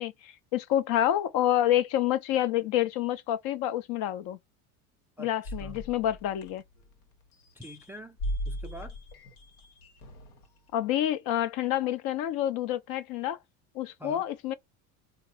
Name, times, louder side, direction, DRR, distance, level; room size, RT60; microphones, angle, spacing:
voice 1, 0.0-4.4 5.2-6.6 10.7-13.4 13.7-14.5, left 12 dB, 50° left, 0.7 m, -28 dB
voice 2, 5.2-5.8 7.5-8.2 8.5-9.0 14.0-14.2, equal, 5° right, 0.4 m, -45 dB
sound 1, 5.4-7.0 7.4-10.5, equal, 80° left, 1.2 m, -38 dB
3.9 x 2.2 x 3.0 m
hypercardioid pair, 80°, 44 cm